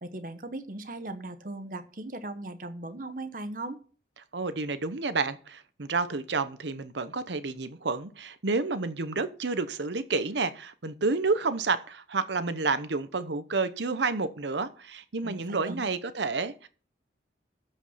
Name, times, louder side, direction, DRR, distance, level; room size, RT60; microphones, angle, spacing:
voice 1, 0.0-3.8 15.2-15.8, right 2 dB, 50° right, 9 dB, 1.0 m, -38 dB
voice 2, 4.3-16.7, right 4 dB, 75° right, 12 dB, 0.9 m, -30 dB
14.0 x 5.3 x 5.7 m, 0.40 s
head